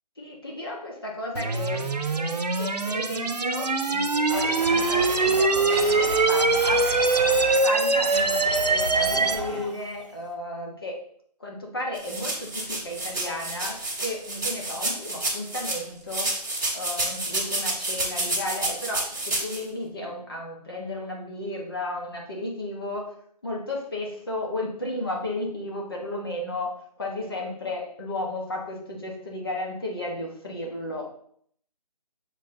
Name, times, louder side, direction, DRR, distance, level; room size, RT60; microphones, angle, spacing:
voice 1, 0.2-6.8 7.4-10.9 11.4-16.3 16.7-23.1 23.4-31.1, left 1 dB, 35° left, -1 dB, 1.3 m, -34 dB
sound 1, 1.3-9.3, right 3 dB, 75° right, 0.9 m, -23 dB
Domestic sounds home sounds, 4.3-10.0, right 1 dB, 45° right, 1.4 m, -34 dB
sound 2, 11.9-15.8 16.1-19.6, right 2 dB, 25° right, 1.6 m, -29 dB
6.9 x 4.5 x 3.8 m, 0.64 s
figure-of-eight pair, 180°, 21 cm